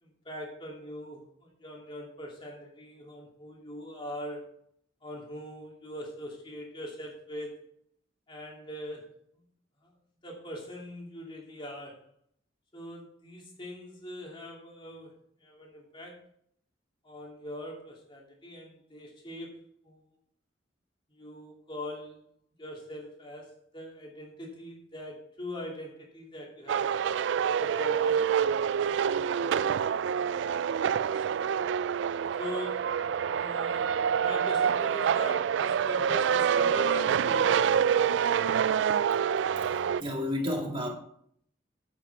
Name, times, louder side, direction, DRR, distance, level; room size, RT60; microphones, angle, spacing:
voice 1, 0.0-4.4 5.0-7.5 8.3-9.1 9.8-9.9 10.2-12.0 12.7-15.1 15.4-16.2 17.0-20.0 21.1-22.2 22.6-26.9 27.6-30.6 31.0-31.5 32.4-33.0 33.3-37.8, left 1 dB, 25° left, 2.7 m, -42 dB
sound 1, 26.7-40.0, right 8 dB, 70° right, 0.3 m, -27 dB
voice 2, 39.6-40.9, left 1 dB, 25° right, 2.3 m, -32 dB
9.4 x 8.5 x 4.7 m
head